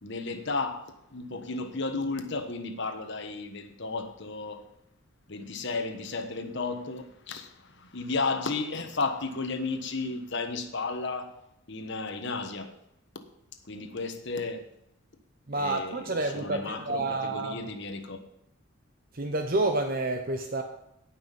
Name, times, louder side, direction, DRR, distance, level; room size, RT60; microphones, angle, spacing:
voice 1, 0.0-4.6 5.3-11.3 11.7-12.7 13.1-13.2 13.7-14.7 15.6-18.2, left 3 dB, 55° left, 1.3 m, -33 dB
voice 2, 15.5-17.6 19.1-20.6, right 2 dB, 45° right, 0.9 m, -29 dB
17.0 x 6.1 x 5.4 m
head